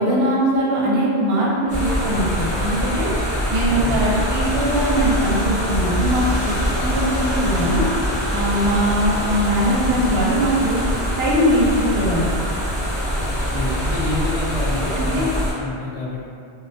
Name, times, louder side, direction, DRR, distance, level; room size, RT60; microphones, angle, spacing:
voice 1, 0.0-3.1 3.5-7.8 8.3-10.8 11.2-12.3 15.0-15.3, equal, 65° right, -5 dB, 0.8 m, -21 dB
sound 1, 1.7-15.5, equal, 10° right, 0.6 m, -23 dB
voice 2, 3.6-4.1 4.5-4.6 13.2-16.2, left 1 dB, 70° left, -5 dB, 0.3 m, -28 dB
2.2 x 2.1 x 2.6 m, 2.4 s
omnidirectional pair, 1.2 m